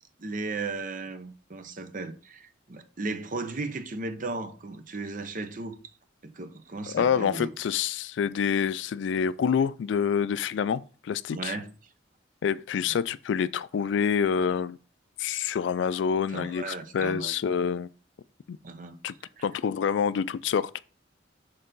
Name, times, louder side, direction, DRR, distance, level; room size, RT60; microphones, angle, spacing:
voice 1, 0.2-5.8 6.2-7.5 11.3-11.7 16.3-17.3 18.6-19.0 19.4-19.5, right 3 dB, 45° right, 0.7 m, -36 dB
voice 2, 6.9-11.6 12.4-14.8 15.2-17.9 18.5-18.6 19.0-19.1 19.4-20.8, left 7 dB, 65° left, 0.3 m, -27 dB
6.6 x 3.9 x 3.8 m
head